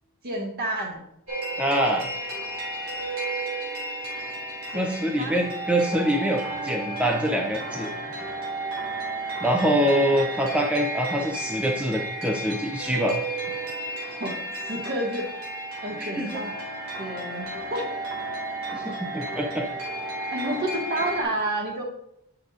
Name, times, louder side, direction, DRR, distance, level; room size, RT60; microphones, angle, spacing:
voice 1, 0.2-1.0 4.7-5.5 14.2-15.3 15.8-16.5 17.0-17.9 20.3-21.8, right 1 dB, 45° right, 0 dB, 1.7 m, -30 dB
sound 1, 1.3-21.2, right 2 dB, 70° right, 2.6 m, -33 dB
voice 2, 1.6-2.1 4.7-7.9 9.4-13.2 16.0-16.4 18.7-19.7, equal, 5° right, 0 dB, 0.6 m, -25 dB
8.0 x 6.7 x 2.5 m, 0.77 s
head